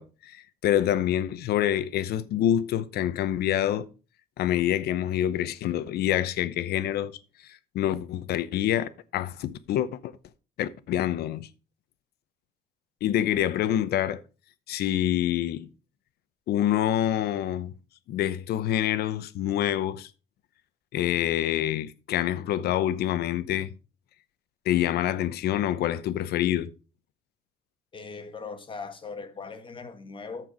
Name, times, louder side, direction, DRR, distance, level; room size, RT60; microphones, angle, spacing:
voice 1, 0.0-3.9 4.4-7.2 7.7-10.1 10.6-11.5 13.0-14.2 14.7-15.7 16.5-17.7 18.1-20.1 20.9-23.7 24.7-26.7, left 11 dB, 70° left, 0.9 m, -26 dB
voice 2, 27.9-30.5, left 4 dB, 30° left, 1.6 m, -39 dB
14.0 x 4.7 x 5.1 m
cardioid pair, 110°, 17 cm